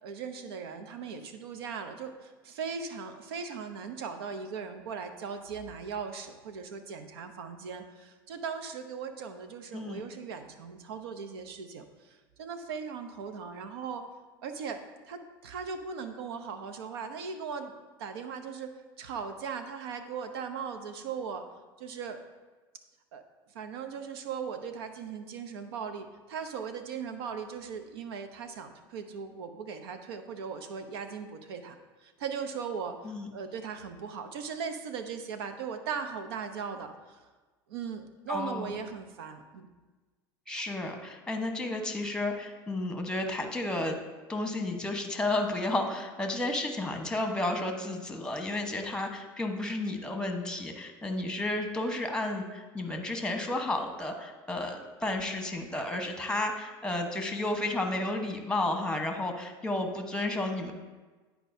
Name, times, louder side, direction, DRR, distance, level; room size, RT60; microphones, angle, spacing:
voice 1, 0.0-14.1 14.4-17.7 18.0-21.4 21.8-22.2 23.1-23.2 23.5-31.7 32.0-37.2 37.7-39.7, right 6 dB, 80° right, 7 dB, 0.7 m, -38 dB
voice 2, 38.3-38.7 40.5-44.0 44.3-60.7, left 2 dB, 5° left, 4 dB, 1.1 m, -32 dB
10.0 x 4.6 x 2.7 m, 1.3 s
hypercardioid pair, 90°, 13 cm